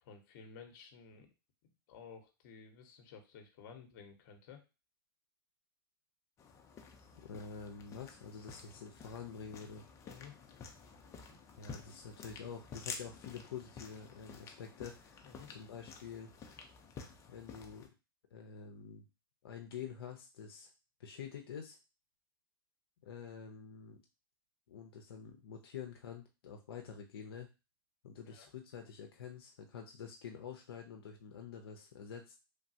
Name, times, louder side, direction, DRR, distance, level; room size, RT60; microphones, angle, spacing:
voice 1, 0.0-1.3 1.9-4.6 10.0-10.3 11.1-11.4 15.2-15.5 28.3-28.5, left 6 dB, 50° left, 5 dB, 0.8 m, -54 dB
sound 1, 6.4-17.9, left 5 dB, 25° left, 0.5 m, -51 dB
voice 2, 7.2-9.8 11.6-16.3 17.3-17.9 18.3-19.0 19.4-20.7 21.0-21.8 23.0-24.0 24.7-27.5 28.0-32.4, left 7 dB, 80° left, 2 dB, 0.5 m, -47 dB
3.2 x 2.2 x 2.7 m, 0.29 s
hypercardioid pair, 125°, 12 cm